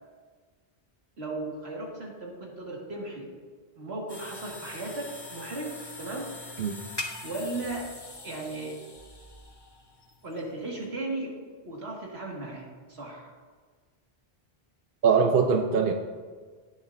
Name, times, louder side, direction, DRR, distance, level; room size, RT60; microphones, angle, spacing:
voice 1, 1.2-3.3 3.8-6.3 7.2-7.9 8.2-8.8 10.2-11.3 11.6-13.3, right 2 dB, 85° right, -2 dB, 2.2 m, -36 dB
sound 1, 4.1-10.9, left 2 dB, 25° left, 1.0 m, -43 dB
voice 2, 15.0-15.9, right 5 dB, 60° right, 4 dB, 0.9 m, -22 dB
17.5 x 7.3 x 2.6 m, 1.5 s
omnidirectional pair, 1.0 m